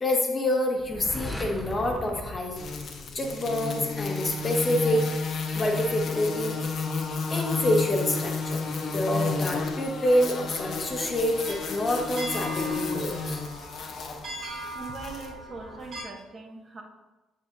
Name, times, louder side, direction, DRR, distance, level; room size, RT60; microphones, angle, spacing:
voice 1, 0.0-2.6 3.1-5.1 5.5-6.6 7.3-8.6 8.9-13.4, left 1 dB, 35° left, 2 dB, 1.3 m, -27 dB
sound 1, 0.8-3.6, left 1 dB, ahead, 1.0 m, -38 dB
sound 2, 2.6-15.3, left 4 dB, 50° left, 0.8 m, -32 dB
sound 3, 10.4-16.0, right 1 dB, 55° right, 2.0 m, -40 dB
voice 2, 14.7-16.8, right 3 dB, 40° right, -1 dB, 1.3 m, -41 dB
8.1 x 5.6 x 2.7 m, 1.1 s
figure-of-eight pair, 45°, 0 cm